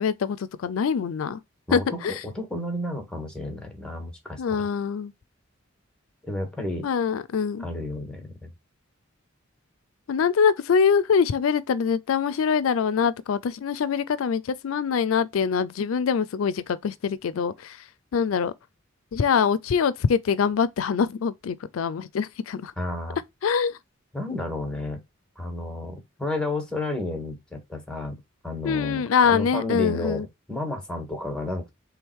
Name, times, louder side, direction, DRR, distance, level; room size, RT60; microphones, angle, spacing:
voice 1, 0.0-1.4 1.7-2.2 4.4-5.1 6.8-7.7 10.1-17.8 18.1-18.5 19.1-22.7 23.4-23.8 28.6-30.3, left 6 dB, 90° left, 0.4 m, -24 dB
voice 2, 1.7-4.6 6.3-6.9 7.6-8.5 22.8-23.2 24.1-25.0 25.4-31.7, left 2 dB, 5° left, 1.5 m, -32 dB
3.6 x 3.3 x 4.5 m
head